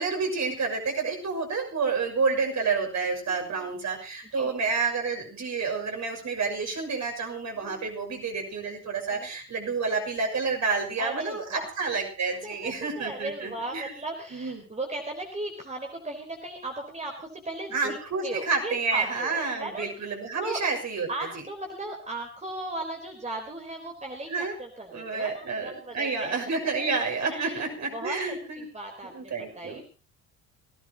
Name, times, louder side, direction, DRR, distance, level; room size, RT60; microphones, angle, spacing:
voice 1, 0.0-13.9 14.3-14.6 17.7-21.3 24.3-24.5 24.9-28.7 29.0-29.8, right 4 dB, 40° right, 3 dB, 6.4 m, -29 dB
voice 2, 3.2-3.7 4.3-4.5 7.6-7.9 9.1-9.3 11.0-11.7 12.4-18.0 18.2-20.1 20.4-20.6 21.1-26.9 27.3-27.6 27.9-28.2 28.6-29.8, right 2 dB, 15° right, 2 dB, 4.0 m, -37 dB
23.5 x 18.0 x 2.9 m, 0.34 s
figure-of-eight pair, 55°, 45 cm